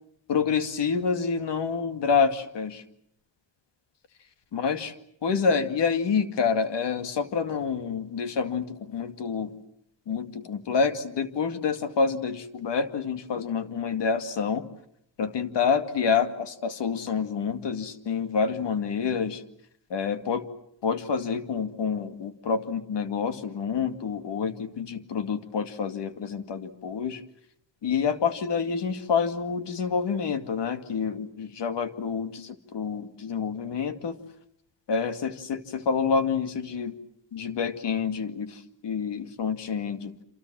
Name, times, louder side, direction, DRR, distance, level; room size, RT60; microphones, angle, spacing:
voice 1, 0.3-2.8 4.5-4.9 5.2-9.5 10.1-14.6 15.2-19.4 19.9-20.5 20.8-27.2 27.8-34.2 34.9-37.0 37.3-40.1, left 5 dB, 65° left, 9 dB, 2.3 m, -28 dB
28.0 x 27.5 x 7.6 m, 0.70 s
wide cardioid pair, 160°, 45 cm